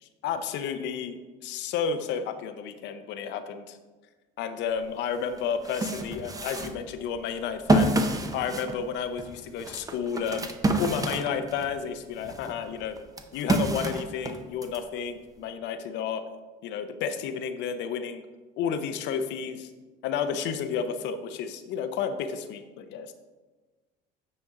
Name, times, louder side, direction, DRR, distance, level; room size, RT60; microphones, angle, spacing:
voice 1, 0.0-3.8 4.4-7.9 8.3-10.5 10.8-13.0 13.3-16.2 16.6-18.2 18.6-19.7 20.0-23.1, left 7 dB, 65° left, 9 dB, 0.6 m, -31 dB
sound 1, 4.8-4.9 5.4-11.8 12.2-14.8, right 2 dB, 20° right, 0.7 m, -28 dB
9.2 x 4.3 x 3.6 m, 1.3 s
supercardioid pair, 90°, 20 cm